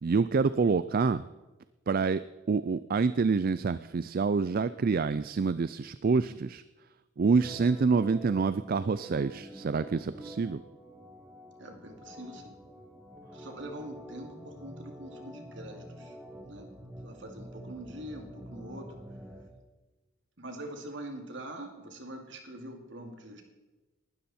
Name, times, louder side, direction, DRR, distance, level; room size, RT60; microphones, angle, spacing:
voice 1, 0.0-1.2 1.9-6.6 7.2-10.6, right 4 dB, 45° right, 14 dB, 0.4 m, -27 dB
Organ, 7.3-19.5, right 1 dB, 5° right, 1.7 m, -47 dB
voice 2, 11.6-12.6 13.3-16.2 16.4-16.7 17.0-18.9 20.4-23.4, right 1 dB, 65° right, 4 dB, 2.5 m, -44 dB
19.5 x 12.5 x 4.3 m, 1.2 s
head